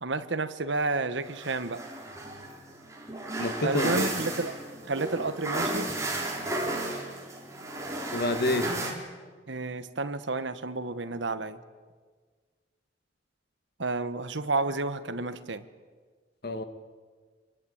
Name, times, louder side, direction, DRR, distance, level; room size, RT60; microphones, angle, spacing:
voice 1, 0.0-1.8 3.6-4.6 4.9-5.9 9.5-11.6 13.8-15.6, right 3 dB, 80° right, 12 dB, 1.3 m, -31 dB
sound 1, 1.2-8.9, right 2 dB, 15° right, 4.0 m, -34 dB
voice 2, 3.4-4.1 8.1-8.7 16.4-16.6, left 1 dB, 55° left, 9 dB, 1.8 m, -28 dB
26.0 x 21.5 x 8.6 m, 1.5 s
head